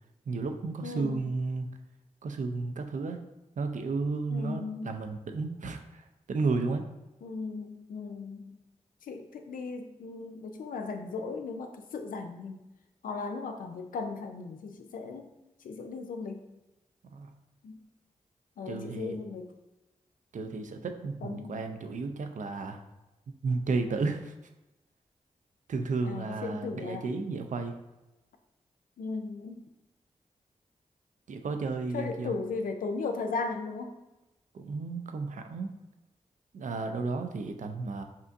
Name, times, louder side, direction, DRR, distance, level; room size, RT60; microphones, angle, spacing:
voice 1, 0.3-1.7 2.2-3.2 3.6-6.8 17.0-17.3 18.7-19.2 20.3-22.8 23.3-24.3 25.7-27.8 31.3-32.3 34.5-35.7 36.5-38.0, right 3 dB, 65° right, 6 dB, 0.5 m, -33 dB
voice 2, 0.8-1.2 4.3-5.0 7.2-8.6 9.0-12.6 13.0-15.3 15.6-16.4 17.6-17.8 18.6-19.5 21.2-21.6 26.0-27.1 29.0-29.6 31.9-33.9, left 4 dB, 80° left, 6 dB, 0.4 m, -37 dB
5.3 x 2.5 x 2.6 m, 0.99 s
cardioid pair, 40°, 14 cm